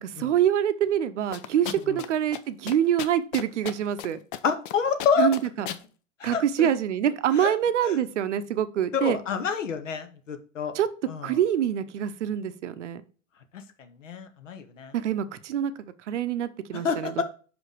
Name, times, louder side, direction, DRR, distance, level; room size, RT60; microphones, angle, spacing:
voice 1, 0.0-4.2 5.2-5.7 6.2-9.2 10.7-10.9 11.2-13.0 14.9-15.7 16.1-17.2, right 10 dB, 60° right, 13 dB, 0.7 m, -25 dB
sound 1, 1.3-2.1 2.3-2.4 2.7-4.1 4.3-4.7 5.0-5.8, left 11 dB, 40° left, 0.6 m, -35 dB
voice 2, 4.4-5.3 6.2-6.7 7.3-7.5 7.8-7.9 8.9-10.7 11.1-11.4 13.8-14.9 16.7-17.2, left 6 dB, 70° left, 9 dB, 1.1 m, -28 dB
5.4 x 5.1 x 4.7 m, 0.39 s
figure-of-eight pair, 95°, 40 cm